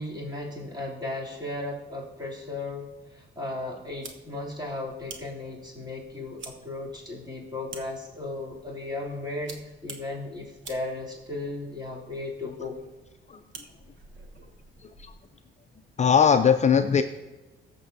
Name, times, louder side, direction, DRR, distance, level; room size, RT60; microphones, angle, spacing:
voice 1, 0.0-2.9 3.1-12.8, left 2 dB, 20° right, -4 dB, 3.1 m, -35 dB
sound 1, 3.9-15.3, right 4 dB, 70° right, 1.1 m, -49 dB
voice 2, 16.0-17.0, left 7 dB, 35° left, 8 dB, 0.5 m, -19 dB
15.0 x 6.8 x 2.7 m, 1.1 s
cardioid pair, 90°, 20 cm